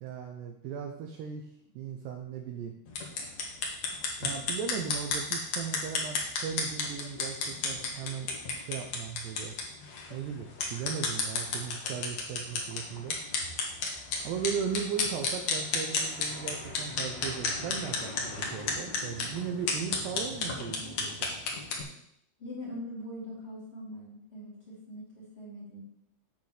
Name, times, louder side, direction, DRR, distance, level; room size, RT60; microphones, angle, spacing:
voice 1, 0.0-1.5 1.8-2.7 4.2-8.3 8.6-9.5 10.1-13.2 14.2-21.3, right 7 dB, 80° right, 4 dB, 2.5 m, -37 dB
sound 1, 2.9-21.8, left 4 dB, 65° left, 1.7 m, -33 dB
voice 2, 22.4-25.8, left 1 dB, 35° left, -6 dB, 2.7 m, -42 dB
9.1 x 4.4 x 7.4 m, 0.74 s
omnidirectional pair, 5.6 m